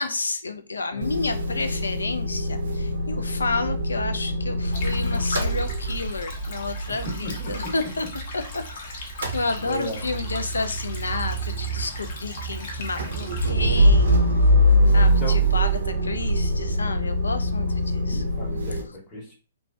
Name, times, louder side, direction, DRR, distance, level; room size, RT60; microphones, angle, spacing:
voice 1, 0.0-8.1 8.3-14.5 14.9-18.2, left 3 dB, 75° left, 0.4 m, -31 dB
Motor vehicle (road) / Engine starting / Idling, 1.0-8.7 9.0-18.8, equal, 70° right, 0.7 m, -24 dB
sound 1, 2.3-7.8, right 7 dB, 20° right, 0.4 m, -37 dB
Stream, 4.7-13.5, left 4 dB, 50° left, 0.8 m, -37 dB
voice 2, 6.9-7.7 9.3-10.0 14.8-14.9 15.2-15.6 17.6-19.3, equal, 20° left, 1.0 m, -37 dB
3.0 x 2.2 x 2.6 m
figure-of-eight pair, 120°, 0 cm